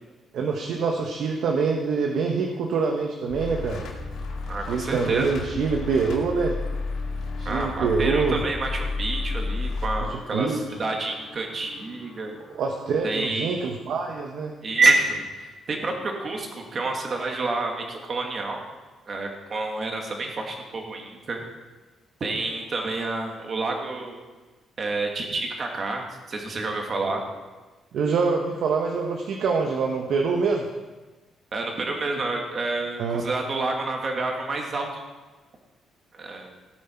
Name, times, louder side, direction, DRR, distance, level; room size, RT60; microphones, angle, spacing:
voice 1, 0.3-3.8 4.7-6.6 7.4-8.4 10.3-10.6 12.5-14.5 27.9-30.7 33.0-33.2, right 5 dB, 60° right, 2 dB, 1.2 m, -25 dB
sound 1, 3.3-13.2, left 3 dB, 80° left, 2.6 m, -33 dB
voice 2, 4.5-5.4 7.5-12.3 13.0-13.7 14.6-18.6 19.1-21.4 22.2-24.2 24.8-27.2 31.5-34.9 36.1-36.5, right 3 dB, 30° right, 1 dB, 2.0 m, -28 dB
16.5 x 9.4 x 4.5 m, 1.3 s
cardioid pair, 175°, 0 cm